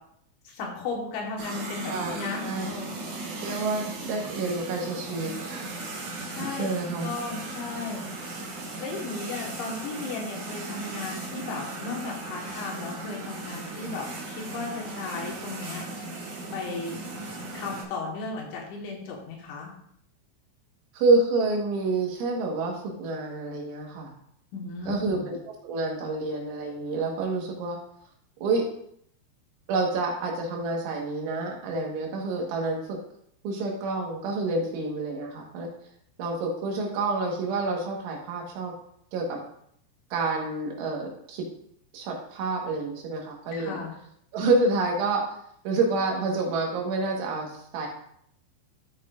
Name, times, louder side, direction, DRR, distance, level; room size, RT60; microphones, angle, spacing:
voice 1, 0.5-3.0 6.3-6.7 7.0-8.4 8.8-15.8 16.5-17.0 17.5-19.7 24.5-25.3 43.5-43.9, left 4 dB, 70° left, -1 dB, 3.8 m, -35 dB
sound 1, 1.4-17.8, right 2 dB, 60° right, 2.1 m, -37 dB
voice 2, 3.4-5.7 6.6-7.1 20.9-24.1 24.9-25.4 25.6-27.8 28.4-28.6 29.7-33.0 33.4-35.7 36.2-38.7 39.1-39.4 40.1-41.4 41.9-43.8 44.3-45.2 45.7-47.9, right 3 dB, 75° right, 0 dB, 3.9 m, -28 dB
13.0 x 6.5 x 2.5 m, 0.68 s
omnidirectional pair, 5.6 m